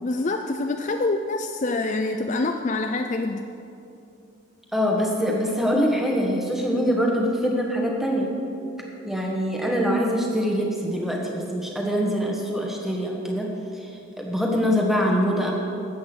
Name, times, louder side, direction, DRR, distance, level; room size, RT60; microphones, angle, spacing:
voice 1, 0.0-3.4, left 2 dB, 35° left, 5 dB, 0.4 m, -26 dB
voice 2, 4.7-8.3 9.0-13.5 13.8-13.9 14.2-15.5, equal, ahead, -1 dB, 1.5 m, -24 dB
14.0 x 8.5 x 6.2 m, 2.7 s
head